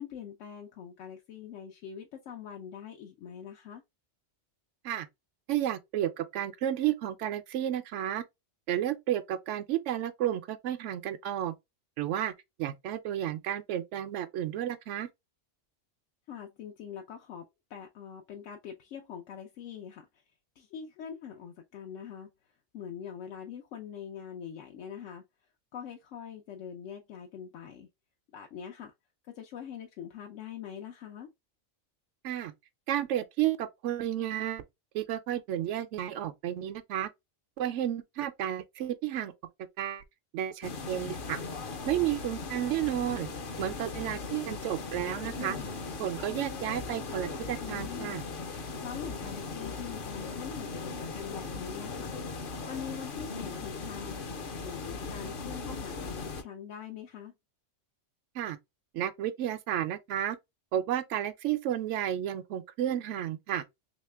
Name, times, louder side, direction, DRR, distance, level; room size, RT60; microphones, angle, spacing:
voice 1, 0.0-3.8 16.3-20.1 20.6-25.2 25.7-27.9 28.3-28.9 29.3-31.3 45.6-45.8 47.6-48.2 48.8-52.1 52.7-54.2 54.6-57.3, left 8 dB, 85° left, 0.9 m, -43 dB
voice 2, 5.5-8.2 8.7-11.5 12.0-12.3 12.6-15.1 32.2-32.5 32.9-34.6 34.9-37.1 37.6-39.3 39.8-40.0 40.3-41.4 41.9-43.3 43.6-45.6 46.0-48.2 58.3-58.6 58.9-60.4 60.7-63.6, right 11 dB, 80° right, 0.9 m, -32 dB
sound 1, 40.6-56.4, left 4 dB, 55° left, 0.7 m, -38 dB
3.1 x 2.8 x 3.2 m
omnidirectional pair, 1.2 m